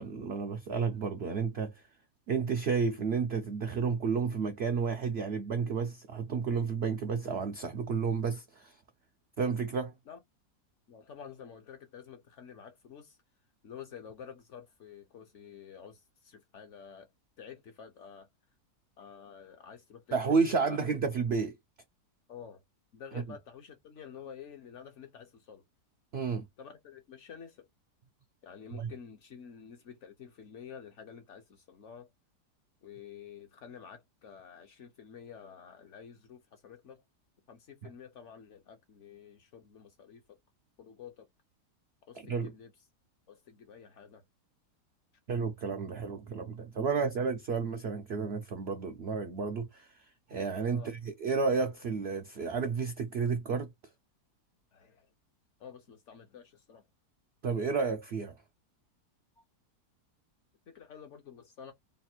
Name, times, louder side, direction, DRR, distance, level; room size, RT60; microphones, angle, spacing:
voice 1, 0.0-1.8 2.3-8.8 9.4-9.9 20.1-21.6 26.1-26.4 28.7-28.9 42.2-42.5 45.3-50.0 50.3-53.7 57.4-58.3, right 5 dB, 70° right, 0.6 m, -31 dB
voice 2, 10.9-13.2 13.6-17.1 17.4-18.3 19.0-20.2 20.6-20.8 22.3-22.6 22.9-25.6 26.6-27.7 28.4-32.1 32.8-37.0 37.5-40.2 40.8-41.3 42.1-42.7 43.3-44.2 50.7-50.9 54.7-55.1 55.6-56.8 59.4-59.5 60.7-61.7, left 7 dB, 55° left, 0.9 m, -50 dB
3.2 x 2.4 x 4.3 m
omnidirectional pair, 1.7 m